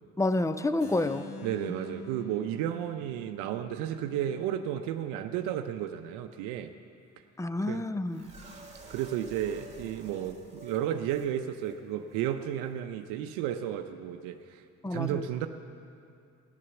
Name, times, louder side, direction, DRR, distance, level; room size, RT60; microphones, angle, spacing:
voice 1, 0.2-1.3 7.4-8.3 14.8-15.2, left 2 dB, 10° left, 12 dB, 0.6 m, -29 dB
Keyboard (musical), 0.8-6.6, left 1 dB, 50° left, 3.5 m, -49 dB
voice 2, 1.4-6.7 7.7-7.8 8.9-14.6 14.9-15.5, right 10 dB, 85° right, 7 dB, 0.6 m, -33 dB
sound 1, 8.1-11.3 11.6-11.7 12.1-12.2, right 3 dB, 20° right, 2.4 m, -50 dB
14.0 x 9.9 x 6.9 m, 2.5 s
supercardioid pair, 80°, 32 cm